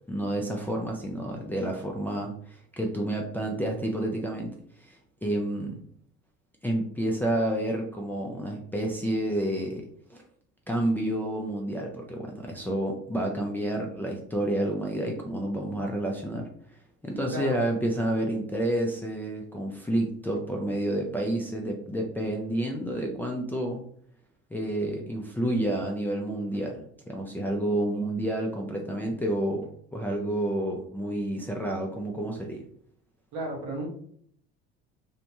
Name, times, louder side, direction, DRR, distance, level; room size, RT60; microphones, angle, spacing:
voice 1, 0.1-5.8 6.6-9.8 10.1-10.2 10.7-16.5 17.0-23.8 24.5-32.6, right 1 dB, 5° left, -1 dB, 0.5 m, -29 dB
voice 2, 17.1-17.6 33.3-33.9, right 1 dB, 65° right, 0 dB, 1.1 m, -33 dB
2.7 x 2.1 x 2.9 m, 0.63 s
hypercardioid pair, 70°, 29 cm